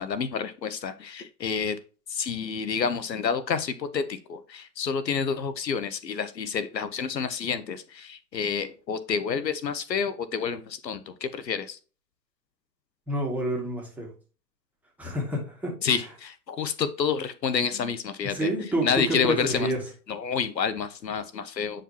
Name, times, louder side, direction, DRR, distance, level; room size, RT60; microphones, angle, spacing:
voice 1, 0.0-1.8 2.1-11.8 15.8-18.5 18.8-19.7 20.1-21.8, left 6 dB, 85° left, 13 dB, 0.9 m, -29 dB
voice 2, 13.1-14.1 15.0-15.7 17.5-17.9 18.2-19.8, right 1 dB, 5° right, -2 dB, 2.1 m, -29 dB
8.7 x 5.0 x 2.9 m, 0.35 s
hypercardioid pair, 120°, 49 cm